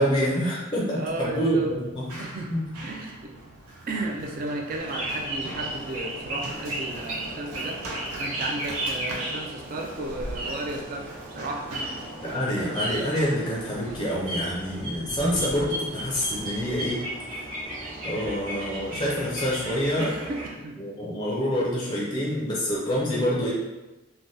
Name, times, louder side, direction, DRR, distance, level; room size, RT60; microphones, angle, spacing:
voice 1, 0.0-2.2 2.5-2.6 12.2-17.0 17.4-17.5 18.0-20.2 20.8-23.5, equal, 20° left, -5 dB, 0.5 m, -26 dB
voice 2, 0.9-1.7 2.2-3.3 3.9-7.8 8.2-11.7 20.0-20.8, right 2 dB, 40° right, 2 dB, 0.3 m, -34 dB
Run, 1.1-18.4, right 1 dB, 85° right, 0.6 m, -43 dB
sound 1, 4.8-20.5, right 1 dB, 65° right, 1.1 m, -35 dB
3.2 x 2.2 x 2.6 m, 1.0 s
head